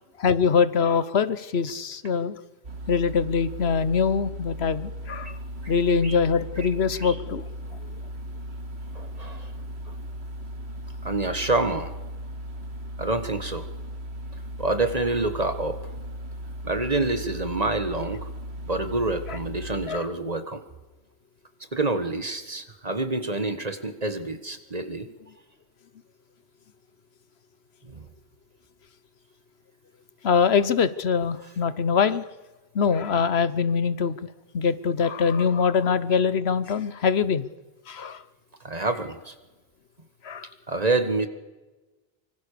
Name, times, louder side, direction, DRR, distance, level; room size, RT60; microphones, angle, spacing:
voice 1, 0.2-2.4 2.9-5.4 5.7-7.4 19.3-19.4 19.9-20.1 30.2-32.2 32.7-34.3 34.5-37.5 37.9-38.2 40.2-40.5, left 6 dB, 75° left, 15 dB, 1.2 m, -23 dB
sound 1, 2.6-19.9, equal, 80° right, 2.2 m, -37 dB
voice 2, 6.6-7.2 8.9-9.5 9.9-10.0 11.0-11.9 13.0-13.7 14.6-15.8 16.6-18.3 18.6-20.6 21.7-25.1 27.8-28.1 38.6-39.3 40.7-41.3, right 2 dB, 40° right, 9 dB, 1.8 m, -27 dB
25.5 x 24.5 x 6.8 m, 1.2 s
omnidirectional pair, 1.1 m